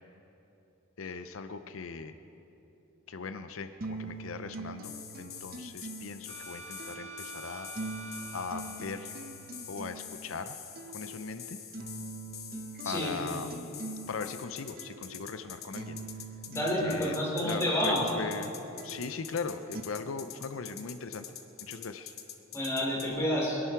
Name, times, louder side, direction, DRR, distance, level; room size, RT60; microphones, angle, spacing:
voice 1, 1.0-2.2 3.1-7.7 8.3-9.1 9.7-10.6 10.9-11.6 12.8-13.7 14.1-16.0 16.8-17.2 17.4-18.5 18.8-21.3 21.6-22.1, left 4 dB, 80° left, 10 dB, 0.6 m, -39 dB
sound 1, 3.8-19.8, right 2 dB, 45° right, 0.7 m, -44 dB
sound 2, 4.8-23.1, left 9 dB, 50° left, 1.0 m, -46 dB
sound 3, 6.3-10.2, right 2 dB, 65° right, 1.7 m, -47 dB
voice 2, 12.8-13.2 16.5-18.1 22.5-23.6, equal, 15° left, -6 dB, 4.2 m, -29 dB
22.5 x 11.0 x 4.6 m, 2.9 s
head